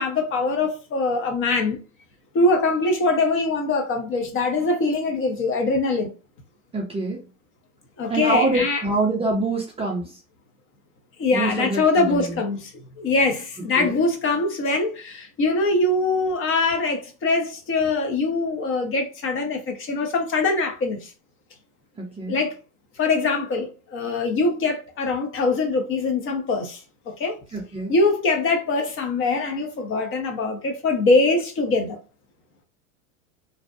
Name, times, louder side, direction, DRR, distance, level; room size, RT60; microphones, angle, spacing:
voice 1, 0.0-1.8 2.3-6.1 8.0-8.8 11.2-12.7 13.0-21.1 22.3-22.5 23.0-26.8 27.1-27.4 27.9-32.0, left 3 dB, 30° left, 0.6 m, -23 dB
voice 2, 6.7-7.2 8.1-10.2 11.3-12.4 13.8-14.0 22.0-22.4 27.5-27.9, right 2 dB, 15° right, 0.4 m, -25 dB
2.7 x 2.1 x 2.4 m
hypercardioid pair, 100°, 42 cm